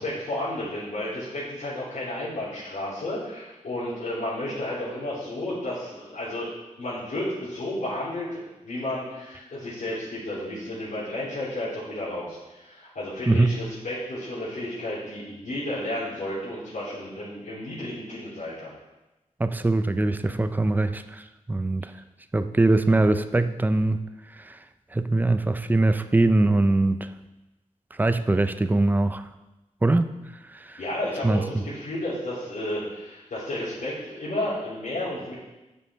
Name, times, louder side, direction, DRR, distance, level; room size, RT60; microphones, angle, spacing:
voice 1, 0.0-6.5 6.8-18.7 30.8-35.3, left 1 dB, 80° left, -13 dB, 3.2 m, -32 dB
voice 2, 13.3-13.6 19.4-21.9 22.3-24.0 24.3-24.6 24.9-27.1 28.0-29.2 29.8-30.1 30.5-30.8 31.2-31.6, right 2 dB, 15° right, 10 dB, 0.4 m, -22 dB
9.5 x 5.5 x 4.2 m, 1.0 s
wide cardioid pair, 110°, 13 cm